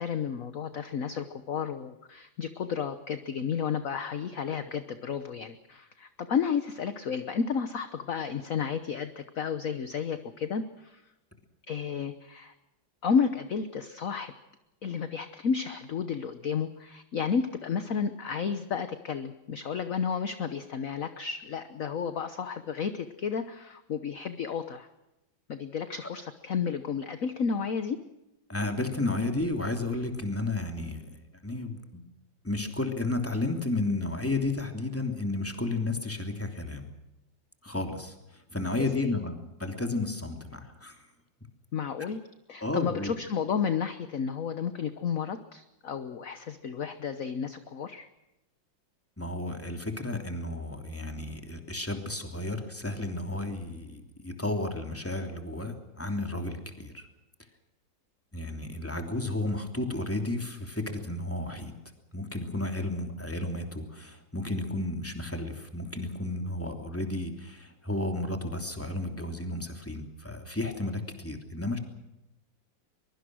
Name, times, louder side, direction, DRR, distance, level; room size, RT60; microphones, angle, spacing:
voice 1, 0.0-11.0 11.7-12.5 13.0-14.3 14.8-24.9 25.5-28.0 38.8-39.2 41.7-42.2 42.5-48.1, left 6 dB, 50° left, 10 dB, 1.3 m, -32 dB
voice 2, 28.5-31.1 31.4-32.0 32.4-36.9 37.6-41.1 42.6-43.1 49.2-57.1 58.3-61.7 62.1-71.8, left 2 dB, 5° left, 5 dB, 3.0 m, -32 dB
23.5 x 23.0 x 6.3 m, 0.95 s
omnidirectional pair, 2.1 m